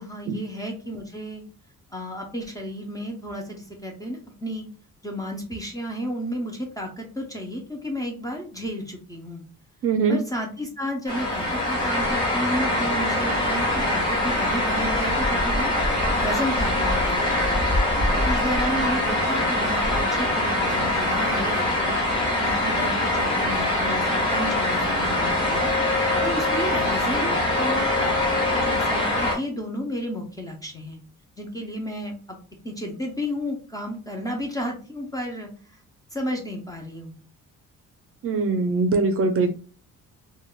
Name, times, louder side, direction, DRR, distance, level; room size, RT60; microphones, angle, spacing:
voice 1, 0.0-1.4 1.9-4.7 5.0-9.4 10.1-15.7 16.2-17.5 18.1-22.0 22.4-25.7 26.2-31.0 31.4-32.4 32.6-35.8 36.1-37.1, equal, 10° left, 1 dB, 0.4 m, -32 dB
voice 2, 9.8-10.2 38.2-39.5, right 4 dB, 45° right, 7 dB, 0.4 m, -22 dB
sound 1, 11.1-29.4, left 1 dB, 40° left, 1.4 m, -23 dB
3.3 x 2.2 x 2.2 m, 0.38 s
cardioid pair, 175°, 32 cm